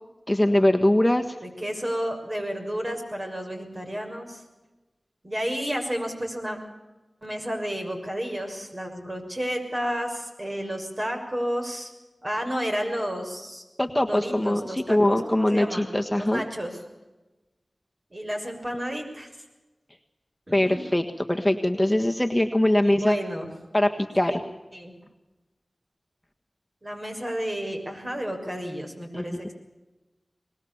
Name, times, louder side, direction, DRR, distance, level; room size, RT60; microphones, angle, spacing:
voice 1, 0.3-1.4 13.8-16.5 20.5-23.2 23.7-24.4 29.1-29.4, left 1 dB, 10° left, 3 dB, 1.5 m, -22 dB
voice 2, 1.4-4.4 5.2-6.6 7.2-11.9 12.2-13.6 14.1-15.9 16.2-16.8 18.1-19.3 20.5-20.8 22.8-23.5 24.3-24.4 24.7-24.9 26.8-29.5, equal, 35° right, 3 dB, 6.5 m, -31 dB
24.0 x 20.5 x 7.2 m, 1.1 s
cardioid pair, 40°, 0 cm